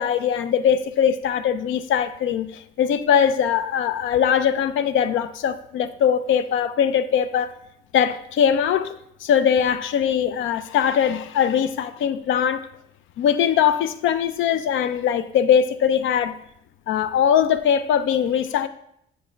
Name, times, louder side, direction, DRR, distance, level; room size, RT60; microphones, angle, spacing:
voice 1, 0.0-7.5 7.9-12.7 13.2-16.4 16.9-18.7, left 8 dB, 80° left, 0.5 m, -21 dB
8.7 x 3.3 x 5.1 m
cardioid pair, 90°, 20 cm